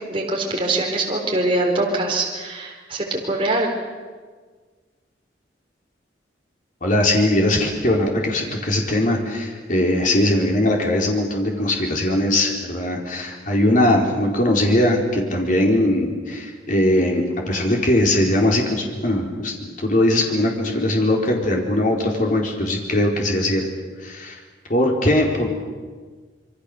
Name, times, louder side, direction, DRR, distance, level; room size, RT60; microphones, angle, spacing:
voice 1, 0.0-3.7, right 2 dB, 30° right, -1 dB, 4.1 m, -23 dB
voice 2, 6.8-23.6 24.0-24.4 24.7-25.5, left 1 dB, 50° left, 0 dB, 4.3 m, -20 dB
27.0 x 23.5 x 6.8 m, 1.5 s
head